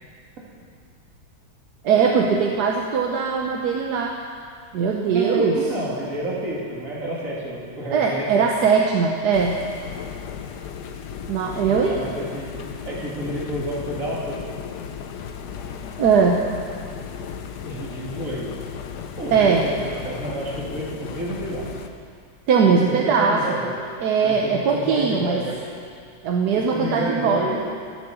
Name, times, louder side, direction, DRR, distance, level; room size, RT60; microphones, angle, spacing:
voice 1, 1.8-4.1 4.7-5.5 7.9-9.6 11.3-12.0 16.0-16.4 19.3-19.6 22.5-23.4 24.0-25.4 26.2-27.4, right 5 dB, 60° right, 0 dB, 1.3 m, -20 dB
voice 2, 5.1-8.6 11.6-12.5 12.8-14.4 17.6-18.5 19.2-21.7 22.6-23.7 24.2-25.6 26.7-27.6, right 1 dB, 40° right, -5 dB, 3.0 m, -29 dB
sound 1, 9.3-21.9, left 7 dB, 65° left, 1.2 m, -35 dB
12.5 x 10.5 x 7.0 m, 2.2 s
omnidirectional pair, 2.3 m